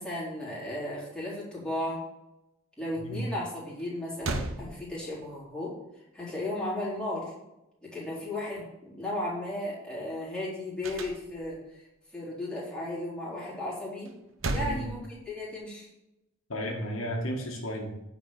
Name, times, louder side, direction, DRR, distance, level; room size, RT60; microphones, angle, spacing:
voice 1, 0.0-2.0 2.8-5.7 6.1-7.3 7.8-11.8 12.1-14.1 14.5-15.0 15.3-15.9, left 1 dB, 5° left, -7 dB, 4.0 m, -35 dB
sound 1, 3.8-3.9 4.2-5.4 10.8-11.7 14.1-15.6, right 2 dB, 70° right, 1.0 m, -35 dB
voice 2, 14.5-14.8 16.5-17.9, equal, 80° left, 0 dB, 2.0 m, -33 dB
10.0 x 5.2 x 6.8 m, 0.90 s
head